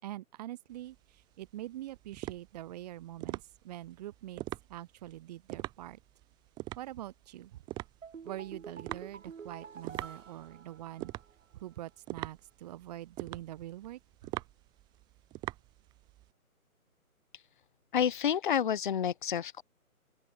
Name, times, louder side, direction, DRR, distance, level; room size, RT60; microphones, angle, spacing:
voice 1, 0.0-4.4 4.7-6.0 6.8-7.6 8.2-11.1 11.5-14.0, right 14 dB, 25° right, 4.3 m, -44 dB
sound 1, 0.7-16.3, right 17 dB, 10° right, 1.5 m, -43 dB
sound 2, 8.0-11.4 11.7-11.8, right 6 dB, 60° right, 6.0 m, -48 dB
voice 2, 17.9-19.6, left 8 dB, 35° left, 1.0 m, -29 dB
open air
hypercardioid pair, 155°, 44 cm